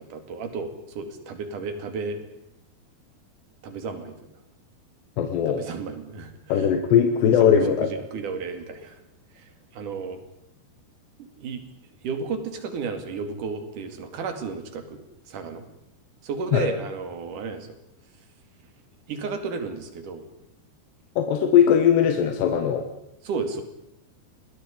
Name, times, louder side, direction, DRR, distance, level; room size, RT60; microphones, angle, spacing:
voice 1, 0.0-2.2 3.6-4.1 5.5-6.3 6.6-6.7 7.4-7.5 7.8-9.0 9.4-9.5 9.7-10.2 11.2-11.6 12.0-15.0 15.3-15.6 16.2-17.7 19.1-20.2 23.2-23.6, right 4 dB, 55° right, 7 dB, 3.6 m, -32 dB
voice 2, 5.2-5.6 6.5-7.9 16.5-16.7 21.2-22.9, left 8 dB, 85° left, 5 dB, 3.6 m, -19 dB
28.0 x 21.0 x 5.2 m, 0.80 s
omnidirectional pair, 4.8 m